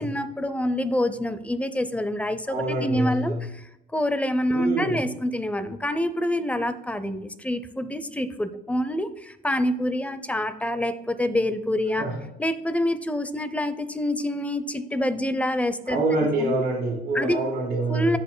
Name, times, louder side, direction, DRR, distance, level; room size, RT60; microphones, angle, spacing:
voice 1, 0.0-3.6 3.9-12.1 12.4-16.0 16.4-16.5 17.1-17.4 17.9-18.2, left 1 dB, 10° left, 12 dB, 0.6 m, -26 dB
voice 2, 2.5-3.4 4.5-5.0 12.0-12.2 15.9-18.2, right 2 dB, 70° right, -5 dB, 2.0 m, -26 dB
14.0 x 5.4 x 2.2 m, 0.89 s
cardioid pair, 110°, 17 cm